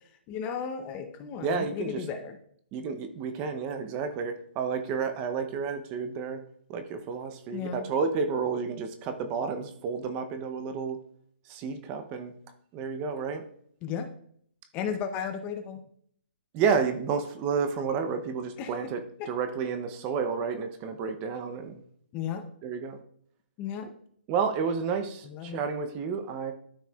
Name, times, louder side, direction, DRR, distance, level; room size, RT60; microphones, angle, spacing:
voice 1, 0.3-2.4 7.5-7.9 13.8-14.1 14.7-15.8 18.6-18.7 19.2-19.3 22.1-22.5 23.6-23.9 25.2-25.6, left 7 dB, 20° left, 7 dB, 0.6 m, -34 dB
voice 2, 1.4-2.0 2.7-6.4 6.7-11.0 11.5-12.3 12.7-13.4 16.5-21.8 22.6-23.0 24.3-26.5, right 5 dB, 25° right, 8 dB, 0.6 m, -31 dB
12.5 x 4.7 x 2.3 m, 0.64 s
hypercardioid pair, 155°, 6 cm